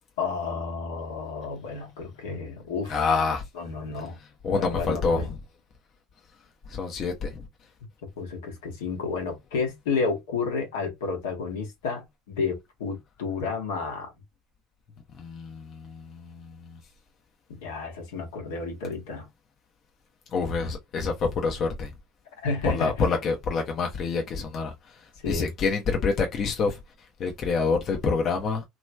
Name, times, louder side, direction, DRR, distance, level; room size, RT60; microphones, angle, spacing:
voice 1, 0.2-3.0 3.5-4.2 4.5-5.3 8.2-14.1 17.5-19.3 22.4-23.1 25.2-25.5, left 4 dB, 80° left, 1.3 m, -31 dB
voice 2, 2.9-3.4 4.2-5.4 6.7-7.4 15.1-16.8 20.3-21.9 22.6-26.8 27.2-28.6, left 4 dB, 45° left, 0.9 m, -27 dB
3.0 x 2.9 x 2.3 m
hypercardioid pair, 85°, 0 cm